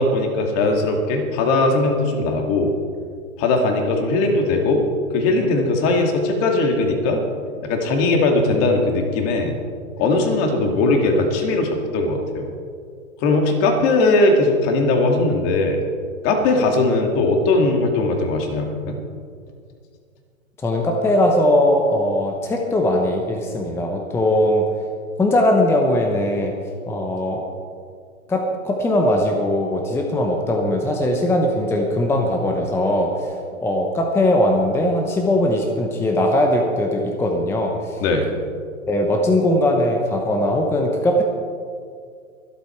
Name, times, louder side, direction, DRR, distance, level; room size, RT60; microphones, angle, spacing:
voice 1, 0.0-2.7 3.4-4.8 5.1-7.2 7.6-9.6 10.0-12.5 13.2-15.8 16.2-19.0 38.0-38.3, left 2 dB, 30° left, 3 dB, 2.4 m, -19 dB
voice 2, 20.6-24.6 25.2-26.5 26.9-27.5 28.3-38.0 38.9-41.2, left 1 dB, 5° left, 2 dB, 0.8 m, -20 dB
24.0 x 8.4 x 4.5 m, 2.1 s
hypercardioid pair, 135°, 42 cm